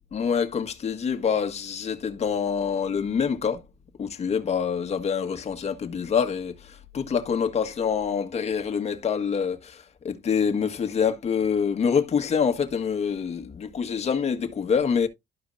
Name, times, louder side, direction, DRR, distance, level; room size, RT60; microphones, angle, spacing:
voice 1, 0.1-3.6 4.0-15.1, left 6 dB, 40° left, 1.7 m, -26 dB
13.0 x 4.9 x 2.6 m
cardioid pair, 110°, 17 cm